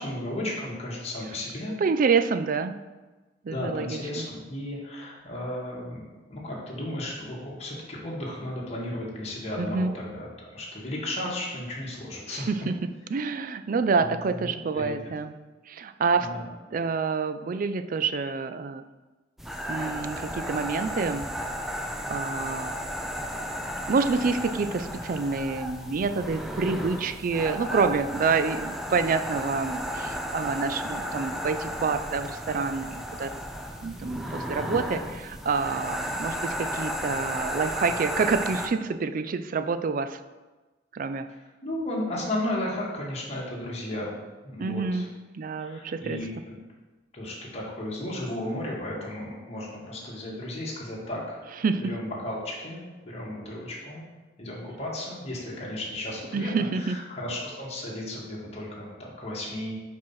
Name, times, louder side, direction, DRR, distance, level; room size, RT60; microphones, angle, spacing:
voice 1, 0.0-1.7 3.5-12.5 14.0-14.5 14.7-14.9 16.2-16.4 34.3-34.8 41.6-44.1 44.4-45.1 45.6-46.6 47.1-51.4 51.8-54.0 54.4-59.8, left 1 dB, 35° left, -4 dB, 1.9 m, -34 dB
voice 2, 1.8-2.8 3.4-4.3 9.6-9.9 12.3-12.7 13.1-15.4 15.7-16.3 16.7-18.8 19.7-21.3 21.7-21.8 22.1-22.7 23.9-33.3 33.8-40.2 40.9-41.3 44.6-45.1 45.3-46.2 51.6-51.9 56.3-57.0, right 4 dB, 45° right, 10 dB, 0.4 m, -27 dB
sound 1, 19.4-38.7, equal, ahead, 0.6 m, -34 dB
5.5 x 5.2 x 5.7 m, 1.2 s
head